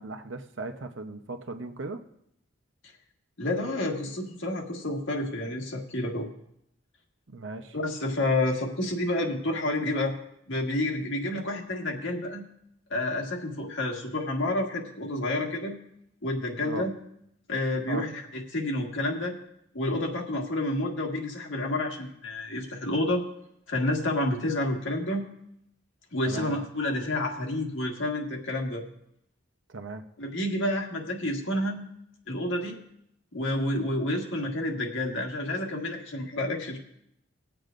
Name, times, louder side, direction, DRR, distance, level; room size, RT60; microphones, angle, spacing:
voice 1, 0.0-2.0 7.3-7.8 16.6-16.8 17.9-18.1 26.2-26.6 29.7-30.0, right 3 dB, 75° right, 6 dB, 0.9 m, -37 dB
voice 2, 3.4-6.3 7.7-10.1 10.5-12.4 12.9-15.8 16.2-16.9 17.5-18.2 18.5-19.4 19.7-23.2 23.7-25.3 26.1-28.8 30.2-31.8 32.3-32.8 33.3-36.8, left 1 dB, 80° left, 1 dB, 1.7 m, -29 dB
22.0 x 7.8 x 2.6 m, 0.77 s
head